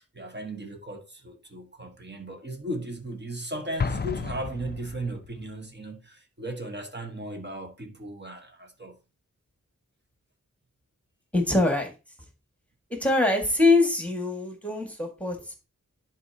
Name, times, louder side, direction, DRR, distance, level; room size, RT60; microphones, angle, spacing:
voice 1, 0.0-9.0, right 1 dB, 35° right, 1.3 m, -36 dB
Explosion, 3.8-5.4, left 5 dB, 35° left, 0.4 m, -32 dB
voice 2, 11.3-11.9 13.0-15.6, left 2 dB, 5° left, 1.8 m, -23 dB
10.5 x 4.3 x 2.8 m
wide cardioid pair, 60°, 32 cm